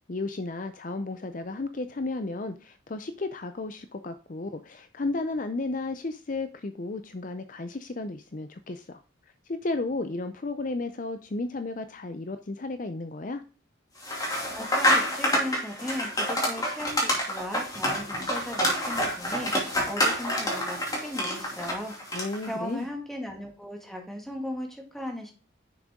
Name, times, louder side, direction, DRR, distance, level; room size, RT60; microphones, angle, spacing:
voice 1, 0.1-9.0 9.5-13.4 22.1-22.9, left 2 dB, 40° left, 10 dB, 0.5 m, -33 dB
sound 1, 14.0-22.5, equal, 20° left, 2.5 m, -27 dB
voice 2, 14.5-22.0 22.5-25.3, left 1 dB, ahead, 2 dB, 2.0 m, -37 dB
10.0 x 6.5 x 3.7 m, 0.36 s
head